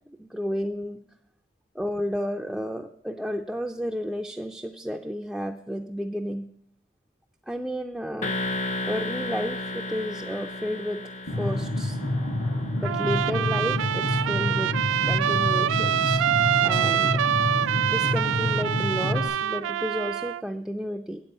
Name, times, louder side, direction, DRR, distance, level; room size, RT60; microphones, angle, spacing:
voice 1, 0.2-1.0 1.7-6.5 7.5-8.3 8.9-11.1 11.4-12.0 12.8-14.7 15.1-16.2 16.6-17.2 17.5-21.2, equal, ahead, 1 dB, 0.4 m, -32 dB
sound 1, 8.2-13.1, left 2 dB, 40° left, 0.6 m, -33 dB
sound 2, 11.3-19.3, left 1 dB, 85° left, 5.0 m, -28 dB
Trumpet, 12.8-20.4, right 10 dB, 90° right, 0.3 m, -25 dB
9.1 x 8.1 x 5.4 m, 0.66 s
head